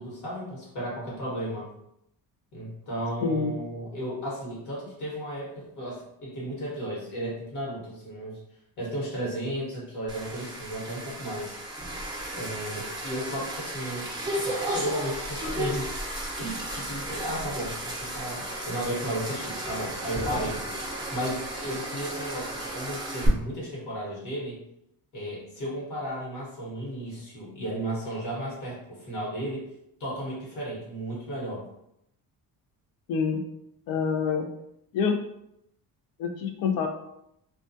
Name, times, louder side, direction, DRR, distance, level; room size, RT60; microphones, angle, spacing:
voice 1, 0.0-1.7 2.5-8.4 8.8-11.5 12.3-15.9 16.4-20.6 20.9-24.6 25.1-29.6 30.0-31.6, right 1 dB, 55° left, -5 dB, 1.1 m, -34 dB
voice 2, 3.2-3.5 33.1-33.4 33.9-34.5 34.9-35.2 36.2-36.9, left 6 dB, 75° left, 5 dB, 0.5 m, -26 dB
sound 1, 10.1-23.3, right 1 dB, 10° right, 0.5 m, -34 dB
2.2 x 2.2 x 2.6 m, 0.79 s
cardioid pair, 130°, 36 cm